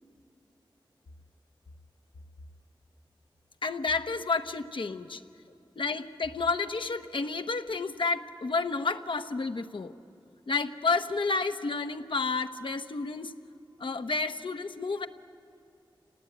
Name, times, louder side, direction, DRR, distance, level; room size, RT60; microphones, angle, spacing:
voice 1, 3.6-5.3 5.8-9.9 10.5-13.3 13.8-15.1, left 4 dB, 70° left, 8 dB, 1.1 m, -30 dB
27.0 x 18.5 x 9.3 m, 2.6 s
wide cardioid pair, 55°, 9 cm